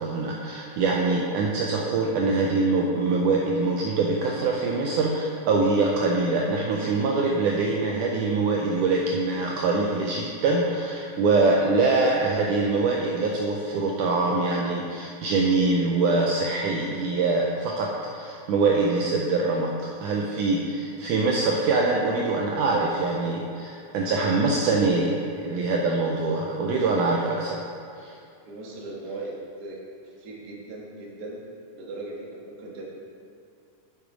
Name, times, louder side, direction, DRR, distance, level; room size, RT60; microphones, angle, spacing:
voice 1, 0.0-27.6 28.0-28.2, right 3 dB, 80° right, -1 dB, 1.8 m, -24 dB
voice 2, 28.5-29.8 30.2-31.3 31.8-32.8, right 2 dB, 55° right, -4 dB, 1.1 m, -38 dB
7.7 x 6.7 x 4.9 m, 2.5 s
omnidirectional pair, 4.2 m